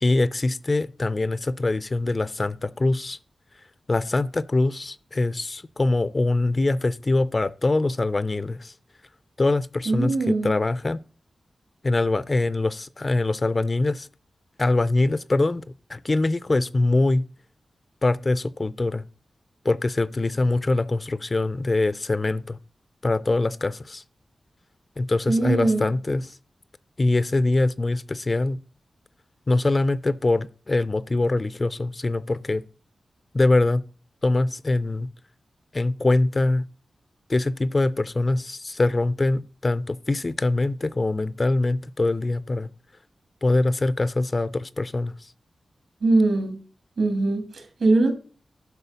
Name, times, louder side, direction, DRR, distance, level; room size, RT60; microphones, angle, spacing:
voice 1, 0.0-3.2 3.9-8.7 9.4-11.0 11.8-14.1 14.6-15.6 15.9-17.2 18.0-19.0 19.6-22.6 23.0-24.0 25.0-26.4 27.0-28.6 29.5-32.6 33.3-33.8 34.2-35.1 35.7-36.6 37.3-42.7 43.4-45.1, left 2 dB, 30° left, 0.4 m, -23 dB
voice 2, 9.8-10.5 25.3-25.9 46.0-46.6 47.0-48.1, right 2 dB, 70° right, 2.9 m, -21 dB
11.0 x 4.5 x 6.7 m
wide cardioid pair, 150°, 0 cm